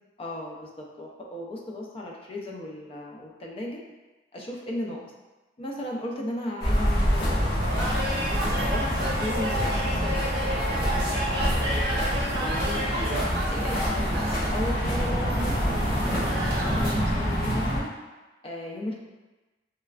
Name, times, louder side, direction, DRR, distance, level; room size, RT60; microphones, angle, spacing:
voice 1, 0.2-3.8 4.3-5.0 5.6-7.8 8.4-12.9 13.5-17.9 18.4-19.0, left 1 dB, 30° left, -1 dB, 0.4 m, -36 dB
sound 1, 6.6-17.8, equal, 60° left, 1.1 m, -26 dB
sound 2, 7.6-16.9, right 1 dB, 60° right, 0.6 m, -32 dB
3.1 x 2.2 x 2.3 m, 1.1 s
head